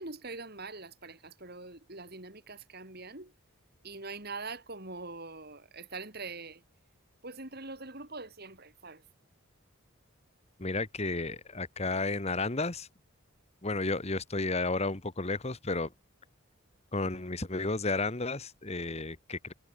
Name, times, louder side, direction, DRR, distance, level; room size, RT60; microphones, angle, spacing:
voice 1, 0.0-3.3 3.8-6.6 7.2-9.0, right 3 dB, 45° right, 4.4 m, -43 dB
voice 2, 10.6-12.9 13.6-15.9 16.9-19.5, left 3 dB, 30° left, 1.3 m, -32 dB
head